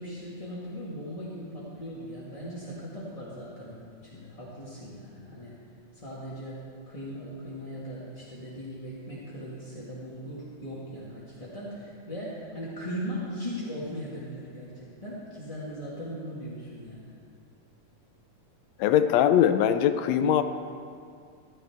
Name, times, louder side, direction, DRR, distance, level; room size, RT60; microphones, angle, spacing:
voice 1, 0.0-5.5 5.9-6.6 6.9-17.1, equal, 15° left, -9 dB, 1.2 m, -39 dB
voice 2, 18.8-20.4, left 10 dB, 80° left, 10 dB, 1.7 m, -21 dB
15.5 x 13.0 x 3.5 m, 2.3 s
omnidirectional pair, 3.4 m